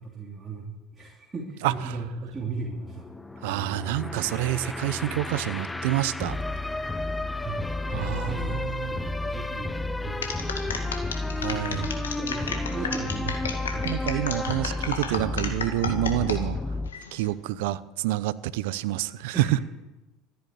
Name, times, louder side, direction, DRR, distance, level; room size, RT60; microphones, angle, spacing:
voice 1, 0.0-3.1 3.4-3.7 7.4-14.0 19.3-19.6, right 4 dB, 20° right, -2 dB, 2.9 m, -37 dB
sound 1, 1.7-16.9, left 2 dB, 10° left, 0.8 m, -32 dB
voice 2, 3.4-6.4 7.9-9.0 11.4-11.9 13.8-16.6 17.1-19.3, right 15 dB, 70° right, 17 dB, 0.7 m, -28 dB
sound 2, 10.2-16.4 16.9-17.3, left 5 dB, 85° left, 2.0 m, -32 dB
14.5 x 9.5 x 8.8 m, 1.1 s
hypercardioid pair, 80°, 0 cm